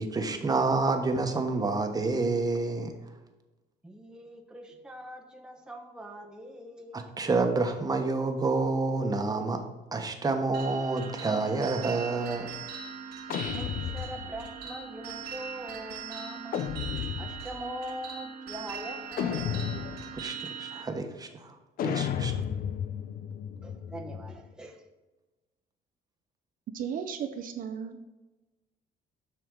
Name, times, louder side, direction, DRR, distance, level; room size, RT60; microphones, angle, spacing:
voice 1, 0.0-2.9 6.9-9.6 9.9-12.5 20.2-21.5 21.8-22.3, right 3 dB, 20° right, 5 dB, 1.2 m, -28 dB
voice 2, 3.8-7.1 13.5-16.7 17.2-19.7 23.6-24.8, right 1 dB, 5° right, 1 dB, 1.0 m, -42 dB
sound 1, 10.5-20.8, right 7 dB, 70° right, 1.3 m, -40 dB
sound 2, 13.3-14.6 16.5-17.6 19.2-20.2 21.8-24.5, left 8 dB, 60° left, 0.6 m, -33 dB
voice 3, 26.7-28.0, right 7 dB, 55° right, 6 dB, 0.7 m, -35 dB
7.9 x 5.9 x 3.9 m, 1.1 s
cardioid pair, 110°, 17 cm